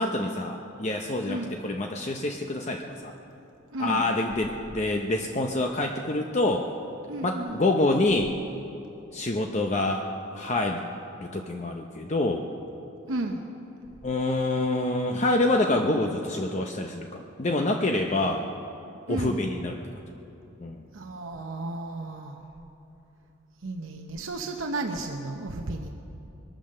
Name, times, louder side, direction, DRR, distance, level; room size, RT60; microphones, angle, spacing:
voice 1, 0.0-3.1 3.8-6.7 7.2-8.4 9.1-10.1 10.3-10.8 11.2-12.5 14.0-18.4 19.1-19.7 20.6-20.8, left 2 dB, 35° left, 2 dB, 0.6 m, -26 dB
voice 2, 1.3-1.6 3.7-4.1 7.1-7.6 13.1-13.6 19.1-19.4 20.9-22.4 23.6-25.9, right 2 dB, 75° right, 3 dB, 0.9 m, -33 dB
22.0 x 9.0 x 6.6 m, 2.8 s
head